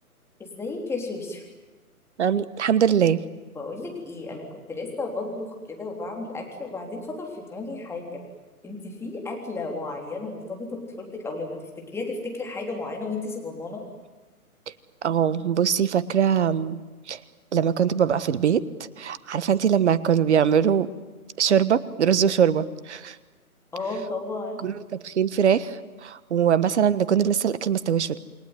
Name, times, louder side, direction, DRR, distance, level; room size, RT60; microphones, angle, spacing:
voice 1, 0.4-1.4 3.6-8.2 8.6-13.8 23.7-24.7, left 3 dB, 5° left, 1 dB, 3.5 m, -33 dB
voice 2, 2.2-3.2 15.0-16.8 17.1-17.2 17.5-20.9 21.4-23.2 24.6-24.7 25.0-28.2, right 8 dB, 50° right, 16 dB, 1.4 m, -22 dB
28.5 x 21.5 x 9.5 m, 1.2 s
figure-of-eight pair, 135°, 44 cm